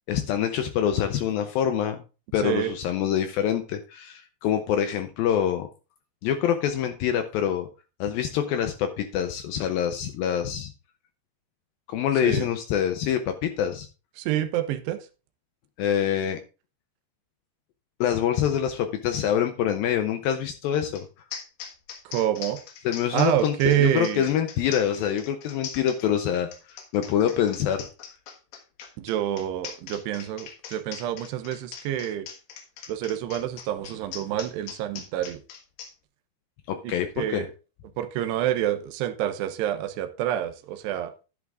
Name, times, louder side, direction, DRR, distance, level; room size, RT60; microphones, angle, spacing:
voice 1, 0.1-2.0 2.3-5.7 6.2-7.7 8.0-10.7 11.9-13.9 15.8-16.4 18.0-21.1 22.8-27.9 36.7-37.5, left 9 dB, 85° left, 6 dB, 2.1 m, -25 dB
voice 2, 2.4-2.7 12.2-12.5 14.2-15.0 22.1-22.6 23.1-24.3 29.0-32.3 32.9-35.4 36.8-37.5 38.0-41.1, right 12 dB, 80° right, 10 dB, 2.8 m, -27 dB
sound 1, 21.0-21.1 21.3-35.9, left 8 dB, 70° left, 3.5 m, -41 dB
11.0 x 10.5 x 2.5 m, 0.32 s
omnidirectional pair, 5.0 m